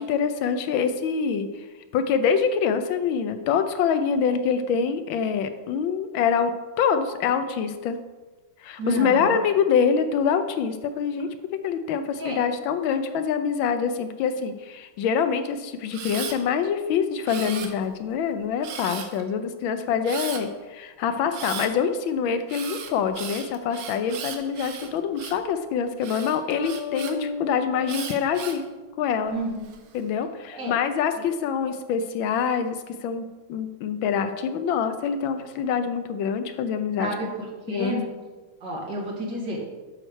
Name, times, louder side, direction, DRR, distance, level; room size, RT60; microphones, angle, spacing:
voice 1, 0.0-1.7 1.9-6.5 6.8-8.0 8.6-11.3 11.6-28.6 29.0-29.3 29.9-37.2 37.7-38.0 39.3-39.6, left 6 dB, 75° left, 9 dB, 1.3 m, -25 dB
voice 2, 8.8-9.4 12.2-12.4 29.3-29.6 30.5-30.7 37.0-38.0 38.6-39.6, right 1 dB, 55° right, -3 dB, 2.4 m, -30 dB
Camera, 15.9-16.4 17.3-18.0 18.6-19.2 20.0-20.4 21.3-21.7 22.5-25.5 26.0-27.1 27.9-28.6 29.3-29.8, right 7 dB, 75° right, 1.6 m, -36 dB
sound 1, 26.5-29.1, left 4 dB, 90° left, 1.9 m, -35 dB
7.9 x 4.4 x 6.2 m, 1.3 s
omnidirectional pair, 2.3 m